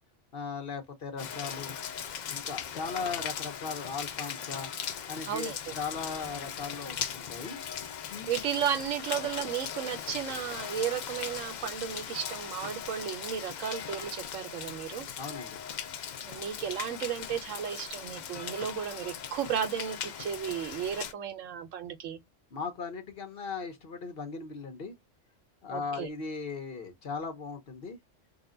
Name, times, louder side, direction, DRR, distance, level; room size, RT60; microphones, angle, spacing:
voice 1, 0.3-1.8 2.3-4.7 5.1-7.6 8.1-8.3 15.2-15.6 22.5-24.9 25.6-28.0, left 5 dB, 50° left, 1.0 m, -38 dB
Rain, 1.2-21.1, left 8 dB, 80° left, 0.4 m, -39 dB
voice 2, 5.3-5.7 8.3-15.1 16.2-22.2 25.7-26.1, right 8 dB, 85° right, 1.0 m, -34 dB
4.0 x 2.1 x 3.7 m
omnidirectional pair, 1.3 m